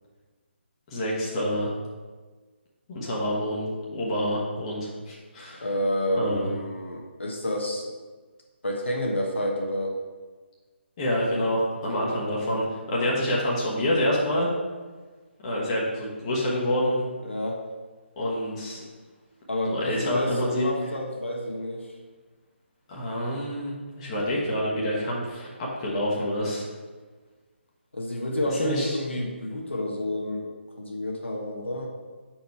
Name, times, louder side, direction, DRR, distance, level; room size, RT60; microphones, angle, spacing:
voice 1, 0.9-1.7 2.9-5.6 6.2-6.5 11.0-14.5 15.4-17.0 18.2-18.8 19.7-20.7 22.9-26.7 28.6-29.0, left 1 dB, 25° left, -5 dB, 1.2 m, -27 dB
voice 2, 5.6-7.9 8.6-10.0 17.2-17.6 19.5-21.9 27.9-30.5 30.8-31.9, left 1 dB, 70° left, -1 dB, 1.1 m, -29 dB
5.2 x 4.5 x 4.5 m, 1.4 s
figure-of-eight pair, 145°, 7 cm